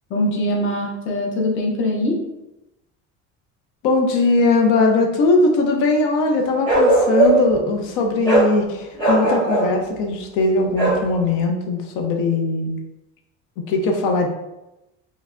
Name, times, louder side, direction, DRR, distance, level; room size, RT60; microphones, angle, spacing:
voice 1, 0.1-2.3, left 1 dB, 40° left, 0 dB, 0.6 m, -22 dB
voice 2, 3.8-12.8 13.6-14.3, left 3 dB, 85° left, 2 dB, 0.6 m, -20 dB
Bark, 6.7-7.6 8.2-8.5 9.0-9.7 10.8-11.0, right 2 dB, 15° left, 1.1 m, -17 dB
3.2 x 3.1 x 2.5 m, 0.94 s
cardioid pair, 165°, 30 cm